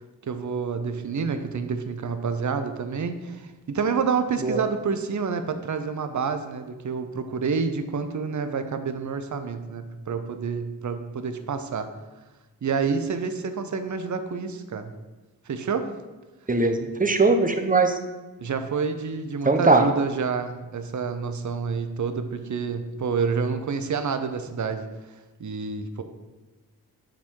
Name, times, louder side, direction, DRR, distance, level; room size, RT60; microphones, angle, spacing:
voice 1, 0.2-11.9 12.6-14.9 15.5-15.9 18.4-24.9 25.4-26.0, right 5 dB, 50° right, 8 dB, 0.6 m, -28 dB
voice 2, 16.5-18.0 19.4-19.9, right 3 dB, 20° right, 6 dB, 0.8 m, -20 dB
7.3 x 3.6 x 4.5 m, 1.2 s
cardioid pair, 40°, 38 cm